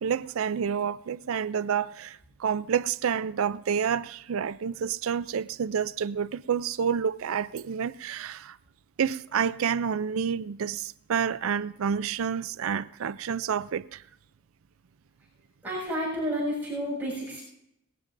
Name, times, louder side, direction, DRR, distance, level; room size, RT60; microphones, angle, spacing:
voice 1, 0.0-8.6 9.0-14.0, right 7 dB, 70° right, 0.4 m, -29 dB
voice 2, 15.6-17.4, equal, 10° right, 7.0 m, -30 dB
20.0 x 17.5 x 2.6 m
head